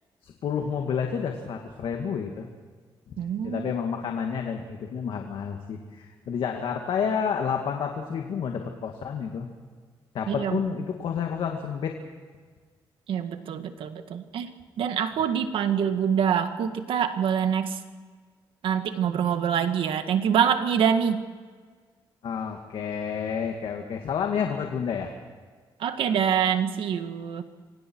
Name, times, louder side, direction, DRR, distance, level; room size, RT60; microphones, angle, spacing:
voice 1, 0.2-2.5 3.1-3.2 3.4-9.5 10.1-11.9 22.2-25.1, left 7 dB, 75° left, 3 dB, 2.2 m, -30 dB
voice 2, 3.2-3.7 10.3-10.6 13.1-14.5 14.8-17.8 18.6-21.2 25.8-27.4, right 8 dB, 85° right, 8 dB, 1.8 m, -25 dB
27.5 x 24.5 x 4.7 m, 1.5 s
cardioid pair, 115°, 9 cm